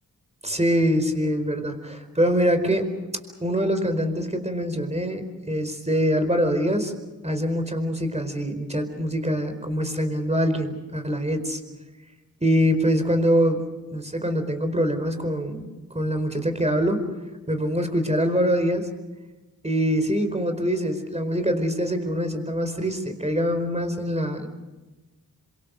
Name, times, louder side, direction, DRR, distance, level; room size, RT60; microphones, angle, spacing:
voice 1, 0.4-2.9 3.4-6.9 7.2-11.6 12.4-13.6 13.9-15.7 15.9-17.0 17.5-18.9 19.6-24.5, equal, 20° right, 8 dB, 4.6 m, -24 dB
26.0 x 24.5 x 6.5 m, 1.2 s
cardioid pair, 50°, 35 cm